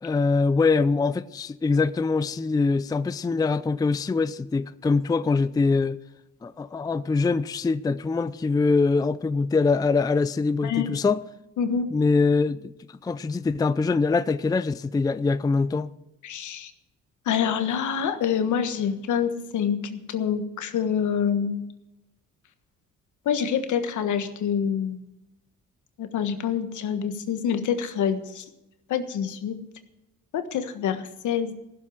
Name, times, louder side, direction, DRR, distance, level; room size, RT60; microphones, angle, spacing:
voice 1, 0.0-6.0 6.4-11.2 11.9-12.7 13.0-15.9, left 4 dB, 15° left, 0.4 m, -23 dB
voice 2, 10.6-10.9 11.6-11.9 16.2-16.7 17.3-21.7 23.2-25.0 26.0-28.4 28.9-29.6 30.3-31.5, left 8 dB, 75° left, 1.5 m, -26 dB
15.0 x 7.3 x 7.7 m
cardioid pair, 90°, 30 cm